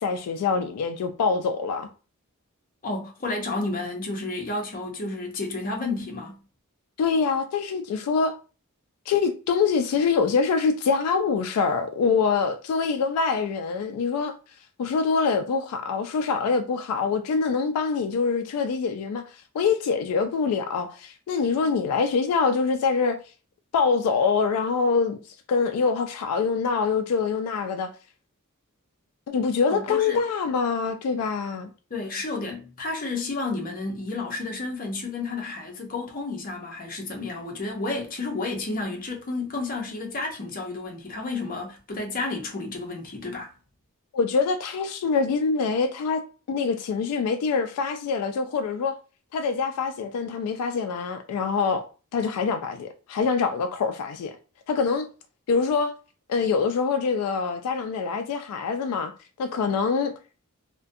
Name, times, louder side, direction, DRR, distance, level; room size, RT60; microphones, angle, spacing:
voice 1, 0.0-1.9 7.0-8.4 9.1-14.3 14.8-19.2 19.5-23.2 23.7-25.2 25.5-27.9 29.3-31.7 44.1-46.2 46.5-49.0 49.3-51.9 52.1-54.3 54.7-55.1 55.5-55.9 56.3-59.1 59.4-60.1, left 5 dB, 85° left, 0.3 m, -24 dB
voice 2, 2.8-6.4 29.7-30.2 31.9-43.5, left 3 dB, 40° left, 0.6 m, -31 dB
2.4 x 2.1 x 2.5 m
head